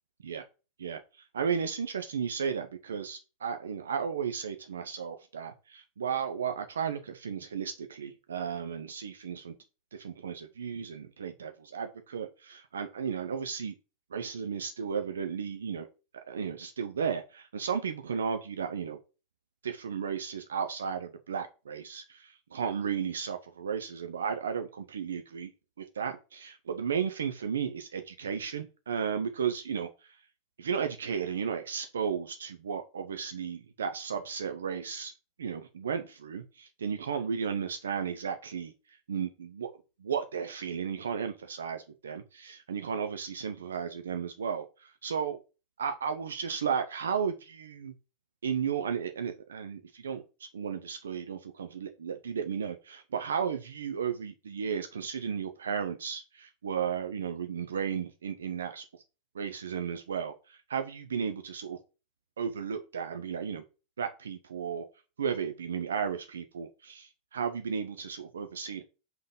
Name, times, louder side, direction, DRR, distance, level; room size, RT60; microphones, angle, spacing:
voice 1, 0.8-9.6 9.9-13.7 14.1-15.9 16.3-19.0 19.6-25.5 25.8-30.2 30.6-35.1 35.4-38.7 39.1-39.7 40.0-45.4 45.8-47.9 48.4-58.8 59.3-61.8 62.4-63.6 64.0-64.8 65.2-68.8, right 7 dB, 80° right, 7 dB, 0.7 m, -34 dB
5.7 x 3.8 x 5.1 m, 0.32 s
hypercardioid pair, 95°, 0 cm